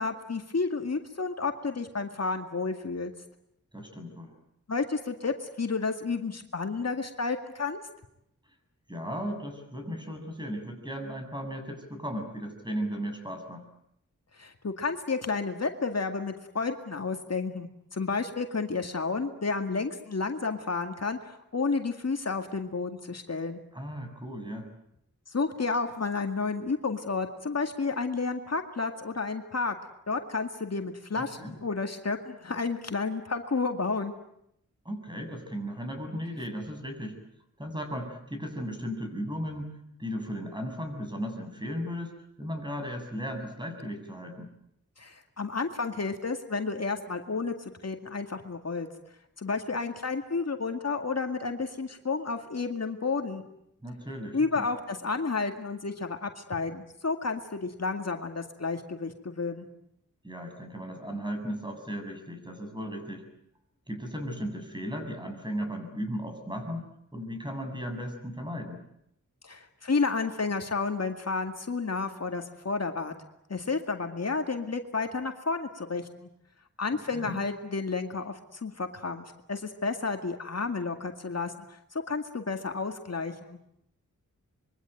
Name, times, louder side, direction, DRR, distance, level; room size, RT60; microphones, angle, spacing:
voice 1, 0.0-3.1 4.7-7.8 14.4-23.6 25.3-29.7 30.1-34.1 45.0-48.9 49.4-53.4 54.3-59.7 69.4-73.1 73.5-76.3 76.8-83.6, left 4 dB, 55° left, 5 dB, 2.1 m, -31 dB
voice 2, 3.7-4.4 8.9-13.6 23.7-24.7 31.1-31.5 34.8-37.2 37.6-44.5 53.8-54.7 60.2-63.2 63.9-68.8 77.1-77.4, equal, 15° right, 5 dB, 7.5 m, -36 dB
26.0 x 23.0 x 9.2 m, 0.77 s
wide cardioid pair, 70°, 31 cm